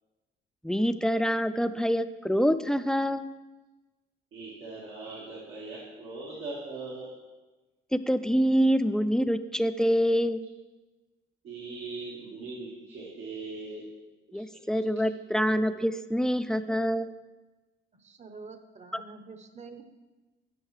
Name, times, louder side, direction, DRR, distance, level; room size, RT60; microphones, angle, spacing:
voice 1, 0.6-3.3 7.9-10.5 14.3-17.1 18.9-19.0, equal, 5° left, 11 dB, 0.3 m, -26 dB
voice 2, 4.3-7.1 11.4-13.9 14.3-14.6, right 3 dB, 85° right, -6 dB, 1.7 m, -40 dB
voice 3, 17.9-19.8, right 4 dB, 35° right, 8 dB, 0.8 m, -47 dB
13.0 x 5.5 x 3.2 m, 1.2 s
cardioid pair, 90°, 20 cm